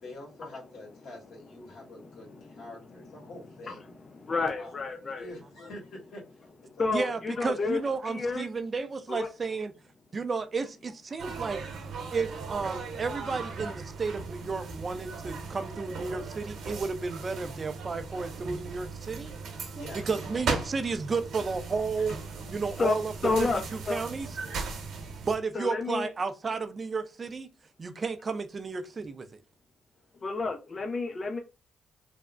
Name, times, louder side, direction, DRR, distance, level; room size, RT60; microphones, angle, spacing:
voice 1, 0.0-3.9 4.6-7.2 7.5-7.7 16.1-16.2 19.7-20.0 22.0-22.1 22.4-22.5, left 1 dB, 75° left, 1.4 m, -46 dB
voice 2, 4.2-5.3 6.8-7.8 8.1-8.5 9.2-9.3 22.8-23.0 23.2-23.6 23.9-24.0 25.5-26.1 30.2-31.4, left 3 dB, 40° left, 0.4 m, -29 dB
voice 3, 6.9-9.7 10.1-11.6 12.1-19.3 19.9-22.2 22.5-24.4 25.3-27.5 27.8-29.3, right 4 dB, 40° right, 0.4 m, -32 dB
sound 1, 11.2-25.4, right 4 dB, 75° right, 1.0 m, -38 dB
3.4 x 2.0 x 2.4 m
supercardioid pair, 70°, 0 cm